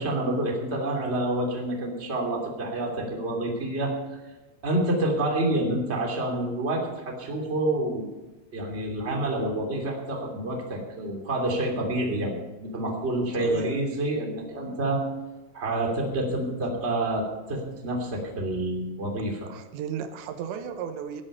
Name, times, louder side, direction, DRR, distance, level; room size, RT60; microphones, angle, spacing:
voice 1, 0.0-4.2 4.6-8.0 8.5-15.0 15.5-19.5, right 1 dB, 20° right, 0 dB, 2.5 m, -28 dB
voice 2, 13.4-13.8 19.5-21.2, right 8 dB, 90° right, 7 dB, 3.4 m, -35 dB
19.0 x 8.8 x 5.6 m, 1.1 s
omnidirectional pair, 5.0 m